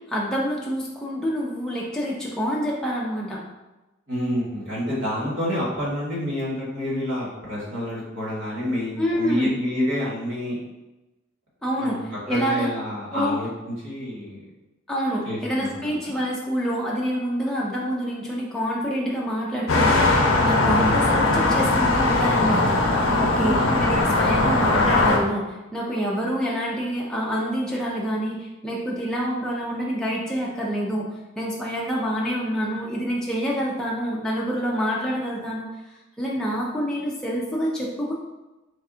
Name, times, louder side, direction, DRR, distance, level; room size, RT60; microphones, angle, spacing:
voice 1, 0.0-3.4 9.0-9.5 11.6-12.7 13.1-13.4 14.9-35.6 36.2-38.1, equal, 5° left, -5 dB, 0.4 m, -27 dB
voice 2, 4.1-10.6 11.8-14.4 15.2-15.9 20.7-21.0 23.4-24.2, left 1 dB, 60° right, -7 dB, 1.4 m, -28 dB
sound 1, 19.7-25.2, left 2 dB, 85° left, 0.6 m, -20 dB
3.5 x 2.2 x 3.7 m, 1.0 s
head